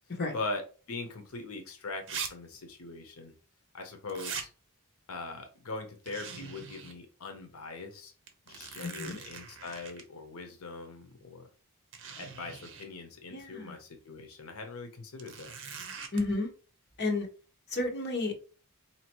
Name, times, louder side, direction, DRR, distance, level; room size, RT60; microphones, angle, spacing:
voice 1, 0.3-3.3 3.7-4.5 5.1-8.1 8.5-11.5 12.2-15.5, left 3 dB, 70° left, 5 dB, 0.8 m, -41 dB
sound 1, 1.3-1.4 2.1-2.3 2.5-2.6 4.1-4.5 6.1-7.0 7.4-7.5 8.3-10.0 11.2-11.3 11.9-12.9 15.2-16.2, right 6 dB, 60° right, 0.8 m, -41 dB
voice 2, 8.8-9.2 13.3-13.8 16.1-16.5 17.0-17.3 17.7-18.5, left 2 dB, 50° left, 2 dB, 1.1 m, -32 dB
4.3 x 2.8 x 3.0 m, 0.36 s
head